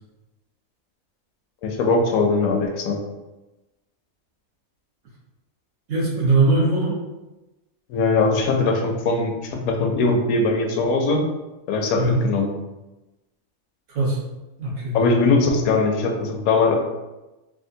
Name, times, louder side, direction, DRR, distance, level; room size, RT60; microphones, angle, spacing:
voice 1, 1.6-3.0 7.9-11.3 11.7-12.5 14.9-16.8, left 3 dB, 85° left, 2 dB, 1.0 m, -20 dB
voice 2, 5.9-7.0 12.0-12.2 13.9-14.2 14.6-15.0, right 2 dB, 60° right, -5 dB, 1.3 m, -20 dB
3.5 x 2.4 x 2.6 m, 1.1 s
omnidirectional pair, 1.5 m